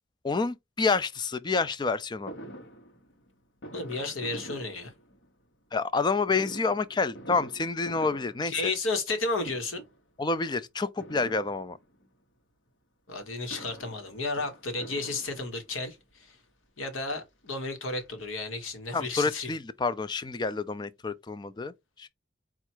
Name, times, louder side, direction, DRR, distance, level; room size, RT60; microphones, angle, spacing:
voice 1, 0.2-2.3 5.7-8.6 10.2-11.8 18.9-22.1, left 4 dB, 20° left, 0.3 m, -28 dB
Fireworks, 2.3-5.5 6.2-9.2 9.4-10.0 11.0-12.1 13.2-15.9 16.6-16.7 17.0-17.1 17.5-18.7 19.0-19.1 19.3-19.4, right 1 dB, 65° left, 1.1 m, -46 dB
voice 2, 3.7-4.9 8.5-9.8 13.1-16.4 16.8-19.5, left 3 dB, 85° left, 1.2 m, -33 dB
4.5 x 2.4 x 4.4 m
head